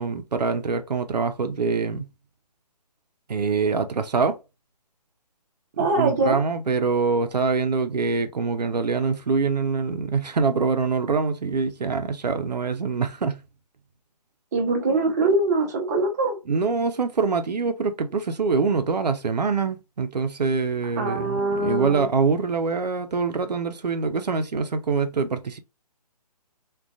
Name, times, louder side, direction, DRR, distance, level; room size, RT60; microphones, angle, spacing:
voice 1, 0.0-2.1 3.3-4.4 5.9-13.4 16.5-25.6, right 4 dB, 80° right, 0.4 m, -24 dB
voice 2, 5.8-6.4 14.5-16.4 21.0-22.1, right 2 dB, 25° right, 0.6 m, -23 dB
2.4 x 2.2 x 2.3 m
figure-of-eight pair, 140°, 21 cm